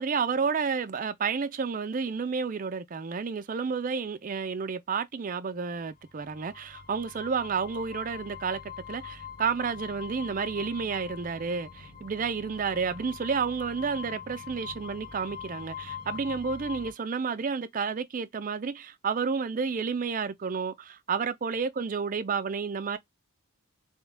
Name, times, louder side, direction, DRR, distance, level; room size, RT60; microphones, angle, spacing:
voice 1, 0.0-23.0, right 5 dB, 40° right, 0.4 m, -31 dB
sound 1, 5.9-16.9, left 7 dB, 40° left, 1.1 m, -43 dB
4.4 x 2.2 x 3.4 m
head